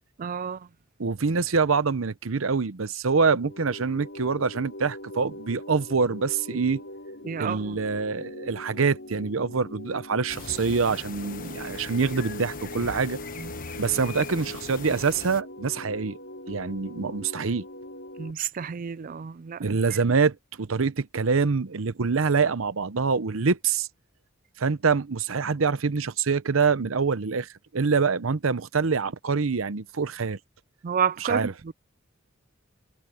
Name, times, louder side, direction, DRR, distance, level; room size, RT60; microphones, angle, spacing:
voice 1, 0.2-0.7 7.2-7.8 13.4-13.5 18.2-19.6 30.8-31.7, right 7 dB, 40° right, 0.4 m, -30 dB
voice 2, 1.0-6.8 7.4-13.2 13.8-16.2 16.5-17.7 19.6-23.9 24.6-30.4 31.3-31.5, right 5 dB, 85° right, 0.8 m, -25 dB
sound 1, 3.3-18.3, left 1 dB, 65° left, 4.8 m, -41 dB
sound 2, 10.3-15.4, left 5 dB, 45° left, 1.2 m, -40 dB
head